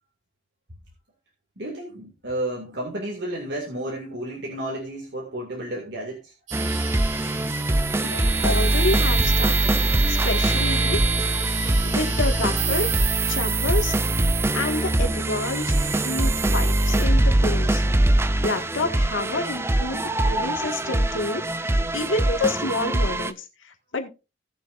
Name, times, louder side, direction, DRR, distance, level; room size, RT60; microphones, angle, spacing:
voice 1, 1.6-6.3, right 1 dB, 60° right, 2.3 m, -32 dB
sound 1, 6.5-23.3, right 1 dB, 10° right, 0.4 m, -23 dB
sound 2, 6.5-17.0, right 7 dB, 75° right, 1.5 m, -29 dB
voice 2, 8.0-9.7 10.1-11.5 11.8-12.9 13.3-13.9 14.5-17.8 18.4-24.1, left 2 dB, 80° left, 1.8 m, -29 dB
17.5 x 6.8 x 2.6 m
head